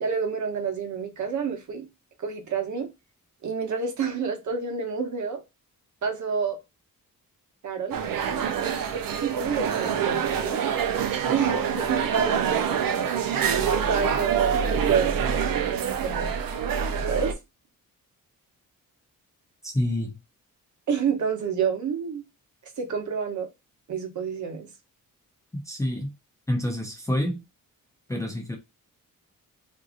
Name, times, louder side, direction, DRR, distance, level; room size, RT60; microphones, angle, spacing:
voice 1, 0.0-1.9 2.2-2.9 3.4-5.4 6.0-6.6 7.6-8.0 8.4-10.6 11.3-12.8 13.7-15.8 16.0-16.4 17.1-17.4 20.9-22.2 22.8-23.5 23.9-24.7, right 6 dB, 55° right, 0.9 m, -29 dB
sound 1, 7.9-17.3, right 7 dB, 75° right, 0.6 m, -26 dB
voice 2, 19.6-20.2 25.6-26.1 26.5-27.4 28.1-28.6, left 1 dB, 10° left, 0.5 m, -27 dB
3.8 x 2.7 x 2.4 m
wide cardioid pair, 175°, 34 cm